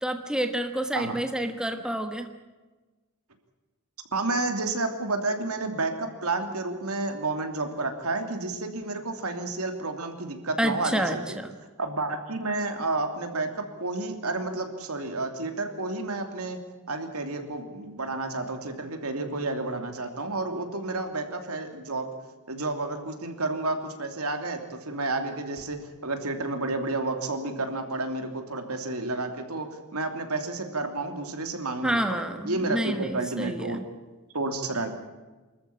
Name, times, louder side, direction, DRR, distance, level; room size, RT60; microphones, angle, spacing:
voice 1, 0.0-2.3 10.6-11.5 31.8-33.8, right 1 dB, 5° right, 6 dB, 1.3 m, -29 dB
voice 2, 4.1-11.4 11.8-16.6 16.9-22.1 22.5-33.8 34.3-34.9, right 2 dB, 80° right, 6 dB, 2.9 m, -31 dB
25.0 x 14.0 x 8.8 m, 1.2 s
head